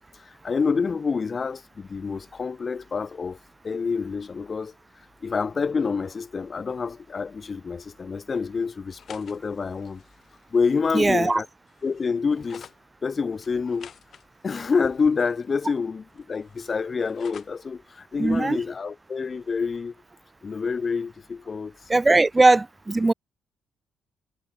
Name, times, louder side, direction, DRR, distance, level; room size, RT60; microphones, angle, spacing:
voice 1, 0.1-3.4 3.6-4.7 5.2-10.0 10.5-11.5 11.8-12.7 13.0-13.9 14.4-19.9 20.4-21.7, left 5 dB, 35° left, 0.9 m, -27 dB
sound 1, 8.8-12.8 13.4-15.8 16.1-17.7, left 8 dB, 55° left, 4.1 m, -50 dB
voice 2, 10.9-11.4 18.2-18.6 21.9-23.1, right 2 dB, 20° right, 0.8 m, -19 dB
cardioid pair, 90°, 0 cm